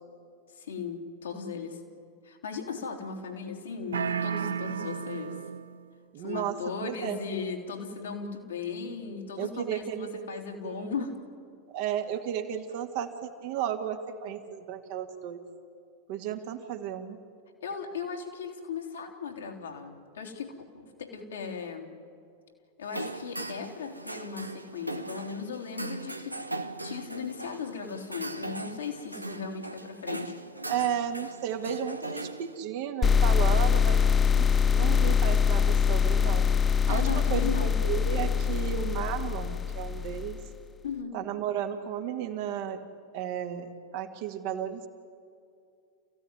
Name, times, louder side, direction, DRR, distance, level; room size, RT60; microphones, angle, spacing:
voice 1, 0.5-1.8 2.2-5.4 6.2-11.2 17.6-22.0 22.8-26.4 26.8-30.4 36.8-37.8 40.8-41.2, left 5 dB, 65° left, 2 dB, 3.3 m, -37 dB
sound 1, 3.9-5.9, right 7 dB, 70° right, 0.6 m, -32 dB
voice 2, 6.1-6.6 6.8-7.2 9.4-10.1 10.8-11.0 11.7-15.4 16.1-17.2 30.7-34.0 34.3-36.5 36.9-40.4 41.1-42.8 43.1-44.9, right 9 dB, 50° right, 5 dB, 2.1 m, -33 dB
sound 2, 22.8-32.6, right 2 dB, 85° right, 1.1 m, -39 dB
sound 3, 33.0-40.5, left 7 dB, 20° left, 0.5 m, -24 dB
29.0 x 16.0 x 9.7 m, 2.4 s
figure-of-eight pair, 90°, 0 cm